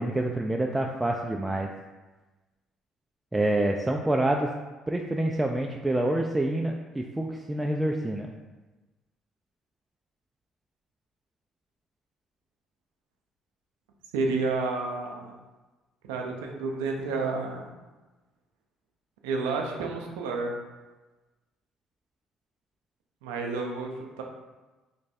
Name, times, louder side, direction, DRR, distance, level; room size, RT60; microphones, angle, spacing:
voice 1, 0.0-1.7 3.3-4.5 4.9-8.3, right 1 dB, 15° right, 1 dB, 0.3 m, -27 dB
voice 2, 14.1-15.3 16.0-17.7 19.2-20.6 23.2-24.2, right 3 dB, 85° right, 1 dB, 0.5 m, -30 dB
3.2 x 2.2 x 4.2 m, 1.2 s
hypercardioid pair, 65°, 0 cm